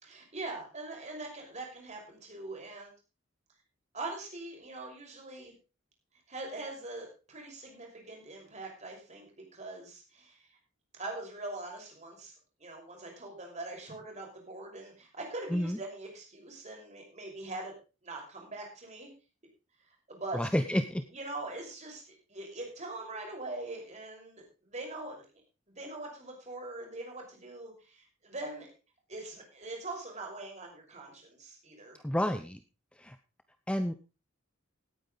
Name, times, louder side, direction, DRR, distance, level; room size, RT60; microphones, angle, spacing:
voice 1, 0.0-2.9 3.9-5.5 6.3-10.5 10.9-12.3 12.6-17.7 18.0-19.1 20.1-20.4 21.1-25.2 25.7-28.7 29.1-32.0, right 2 dB, 35° right, 0 dB, 5.8 m, -42 dB
voice 2, 20.3-21.0 32.0-32.6 33.0-33.2 33.7-33.9, equal, 5° left, 9 dB, 0.7 m, -29 dB
17.5 x 9.2 x 4.0 m, 0.32 s
head